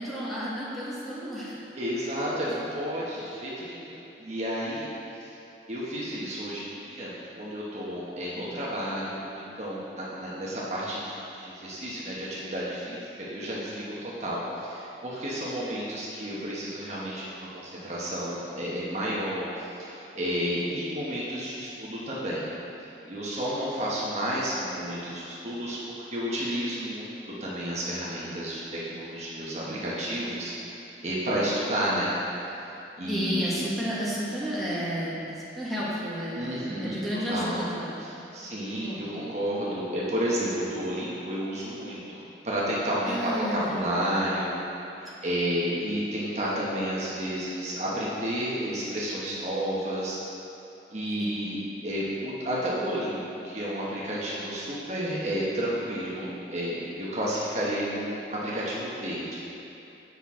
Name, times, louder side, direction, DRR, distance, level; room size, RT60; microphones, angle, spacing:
voice 1, 0.0-1.6 20.6-20.7 33.1-39.0 43.1-44.0 45.1-45.3 51.2-51.5, equal, ahead, -9 dB, 1.3 m, -32 dB
voice 2, 1.7-4.9 5.2-5.3 5.7-22.4 23.0-32.1 33.0-33.5 36.3-37.0 37.3-37.6 38.0-44.6 45.0-50.2 50.9-59.5, equal, 40° right, -6 dB, 1.0 m, -31 dB
8.1 x 5.8 x 3.6 m, 2.9 s
head